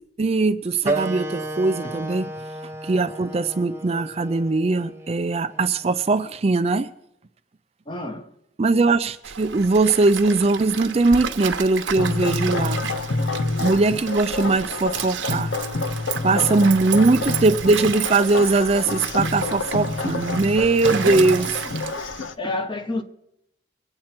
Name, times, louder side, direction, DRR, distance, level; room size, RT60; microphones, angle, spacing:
voice 1, 0.2-2.3 2.6-6.9 8.6-12.9 13.6-15.5 16.2-21.5, right 3 dB, 35° right, 0.4 m, -20 dB
Wind instrument woodwind instrument, 0.8-6.0, right 2 dB, 15° right, 0.8 m, -32 dB
voice 2, 7.9-8.3 16.3-16.8 20.9-21.4 22.4-23.0, left 2 dB, 25° left, 1.0 m, -30 dB
Stream, 9.2-22.3, right 7 dB, 85° right, 1.0 m, -32 dB
sound 1, 12.0-22.3, left 3 dB, 85° left, 0.6 m, -28 dB
23.0 x 8.7 x 4.4 m
head